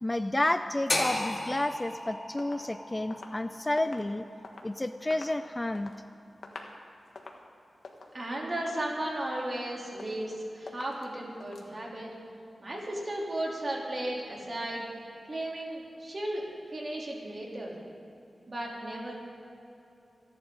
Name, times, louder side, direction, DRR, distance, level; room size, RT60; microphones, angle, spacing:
voice 1, 0.0-4.2 4.6-5.9, left 1 dB, 20° left, 10 dB, 0.4 m, -30 dB
sound 1, 0.9-5.0, left 2 dB, 35° left, 1.9 m, -35 dB
sound 2, 2.4-4.7 5.0-6.0 6.3-6.8 7.1-7.5 7.8-8.2 8.5-8.9 9.3-9.7 10.0-10.3 10.7-11.1 11.4-11.7, left 3 dB, 70° left, 1.5 m, -47 dB
voice 2, 8.1-12.1 12.6-14.9 15.3-17.8 18.5-19.1, right 1 dB, 40° right, -3 dB, 3.2 m, -35 dB
26.5 x 11.0 x 3.9 m, 2.7 s
wide cardioid pair, 95°, 0 cm